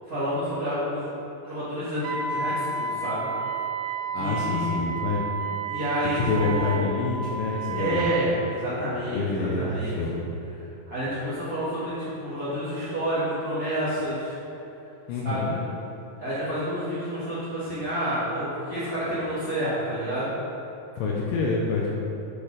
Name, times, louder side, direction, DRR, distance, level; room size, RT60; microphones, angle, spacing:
voice 1, 0.1-3.3 4.2-4.9 5.7-6.9 7.7-9.9 10.9-14.3 15.2-15.6 16.2-20.3, equal, 50° right, -13 dB, 1.1 m, -29 dB
Wind instrument woodwind instrument, 2.0-8.3, right 4 dB, 80° right, 2.2 m, -31 dB
voice 2, 4.1-5.2 6.2-8.1 9.1-10.3 15.1-15.6 21.0-21.9, left 4 dB, 80° left, -2 dB, 2.1 m, -27 dB
8.8 x 4.1 x 4.9 m, 3.0 s
omnidirectional pair, 4.5 m